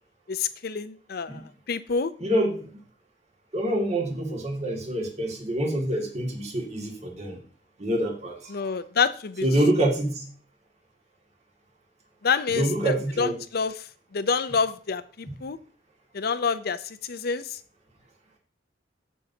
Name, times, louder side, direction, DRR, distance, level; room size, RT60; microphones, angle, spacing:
voice 1, 0.3-1.4 1.7-2.1 8.5-9.5 12.2-13.7 14.1-15.6 16.1-17.6, left 5 dB, 60° left, 13 dB, 0.6 m, -27 dB
voice 2, 2.2-2.6 3.5-7.4 7.8-8.3 9.4-10.2 12.5-13.4 15.3-15.4, right 1 dB, 40° right, 0 dB, 2.1 m, -26 dB
13.5 x 5.6 x 2.8 m, 0.43 s
head